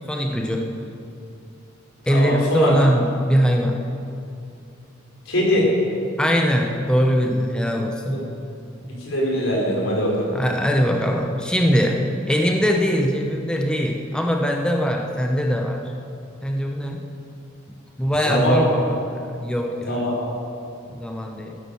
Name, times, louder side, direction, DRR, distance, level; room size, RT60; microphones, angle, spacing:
voice 1, 0.1-0.7 2.1-3.8 6.2-8.2 10.3-15.8 16.4-17.1 18.0-20.0 20.9-21.6, equal, 5° left, 2 dB, 0.8 m, -21 dB
voice 2, 2.1-2.8 5.3-5.7 8.1-8.2 8.9-10.3 18.2-18.6 19.8-20.2, equal, 80° left, -3 dB, 4.3 m, -22 dB
15.0 x 9.9 x 7.0 m, 2.6 s
head